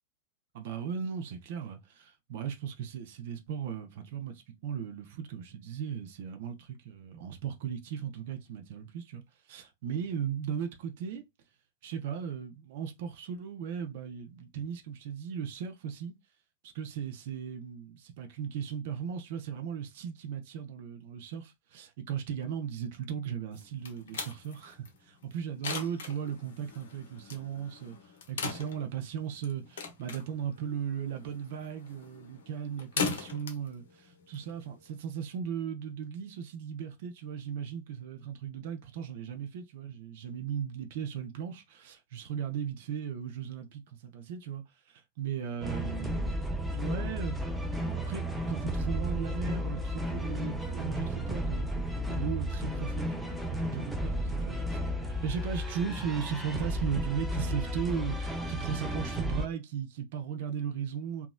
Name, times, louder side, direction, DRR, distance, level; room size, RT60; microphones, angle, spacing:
voice 1, 0.5-11.2 11.8-16.1 16.6-46.5 46.7-47.4 47.8-61.3, right 8 dB, 50° right, 0.5 m, -37 dB
sound 1, 23.5-35.0, left 5 dB, 60° left, 0.6 m, -40 dB
sound 2, 45.6-59.5, equal, 5° right, 0.5 m, -33 dB
2.9 x 2.3 x 2.2 m
figure-of-eight pair, 90°, 0 cm